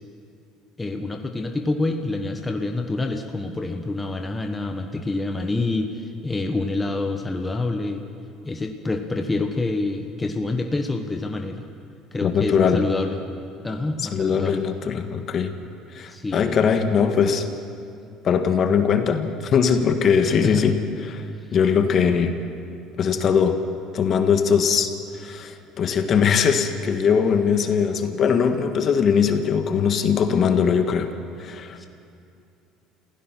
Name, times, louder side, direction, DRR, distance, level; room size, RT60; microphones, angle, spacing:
voice 1, 0.8-8.0 8.4-11.6 12.1-13.2 13.6-14.6 16.1-16.6 20.2-20.7 31.8-31.9, left 2 dB, 15° left, 4 dB, 1.2 m, -27 dB
voice 2, 12.2-12.8 14.0-15.5 15.9-17.5 18.2-20.8 21.1-21.2 21.5-22.3 23.0-23.6 23.9-24.9 25.2-31.1 31.4-31.8, left 6 dB, 40° left, 7 dB, 1.5 m, -20 dB
27.5 x 16.0 x 6.1 m, 2.5 s
cardioid pair, 125°, 0 cm